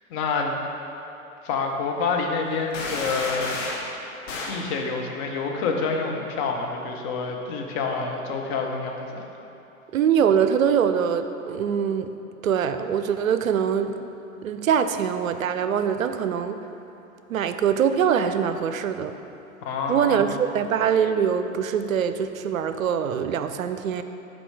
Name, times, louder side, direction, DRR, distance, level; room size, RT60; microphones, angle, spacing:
voice 1, 0.1-0.6 1.4-3.5 4.5-9.2 19.6-20.3, left 4 dB, 35° left, 2 dB, 0.8 m, -27 dB
sound 1, 2.7-3.9 4.3-4.6, left 2 dB, 60° left, 1.2 m, -31 dB
voice 2, 9.9-12.1 12.4-14.1 14.4-16.6 17.3-19.1 19.9-24.0, right 7 dB, 75° right, 9 dB, 0.5 m, -23 dB
6.8 x 4.5 x 4.7 m, 3.0 s
figure-of-eight pair, 100°, 42 cm